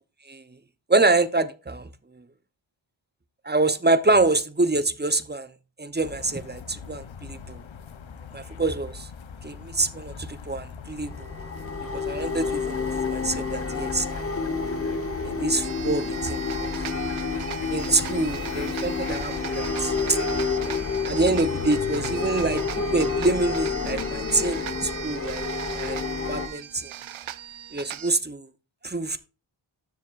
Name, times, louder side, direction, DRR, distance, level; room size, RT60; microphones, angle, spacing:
voice 1, 0.9-1.9 3.4-5.5 5.8-7.6 8.3-9.1 9.4-11.3 11.9-14.5 15.2-16.7 17.7-20.2 21.1-22.6 22.9-25.4 25.7-26.0 26.3-26.9 27.7-28.5 28.8-29.2, right 2 dB, 20° right, 0.7 m, -26 dB
sound 1, 6.0-23.4, left 6 dB, 70° left, 0.8 m, -41 dB
sound 2, 11.0-26.5, left 4 dB, 30° left, 1.1 m, -29 dB
sound 3, 15.6-28.1, right 10 dB, 75° right, 0.5 m, -39 dB
12.5 x 7.4 x 2.4 m
wide cardioid pair, 75°, 48 cm